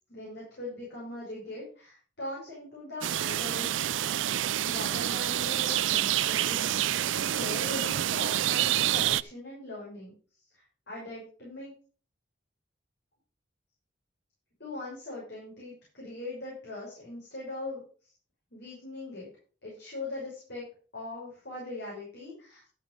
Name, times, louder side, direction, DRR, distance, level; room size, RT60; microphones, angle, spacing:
voice 1, 0.1-3.9 4.7-6.7 7.1-10.1 10.5-11.7 14.6-18.1 18.5-19.3 19.6-20.7 20.9-22.7, left 2 dB, 60° left, -6 dB, 5.8 m, -41 dB
sound 1, 3.0-9.2, right 12 dB, 80° right, 0.4 m, -28 dB
13.0 x 6.3 x 5.3 m, 0.40 s
head